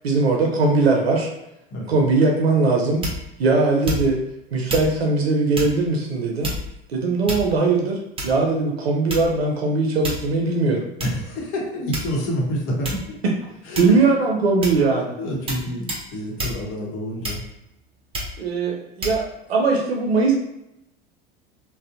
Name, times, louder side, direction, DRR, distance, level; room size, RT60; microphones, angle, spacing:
voice 1, 0.0-1.3 1.9-3.0 3.4-4.2 4.5-6.5 6.9-10.8 13.8-15.2 18.4-20.3, right 3 dB, 90° right, 0 dB, 0.5 m, -20 dB
sound 1, 3.0-3.4 3.8-4.3 4.7-4.9 5.5-5.8 6.4-6.8 7.3-7.7 8.2-8.5 9.1-9.5 10.0-10.3 11.0-11.1 11.9-12.3 12.8-13.1 13.7-14.1 14.6-14.9 15.5-15.6 15.9-16.1 16.4-16.6 17.2-17.6 18.1-18.4 19.0-19.2, equal, 20° right, 0.7 m, -29 dB
voice 2, 11.0-13.2 13.6-14.0 15.2-17.4, equal, 45° left, -2 dB, 0.9 m, -28 dB
2.4 x 2.1 x 2.5 m, 0.86 s
hypercardioid pair, 85°, 30 cm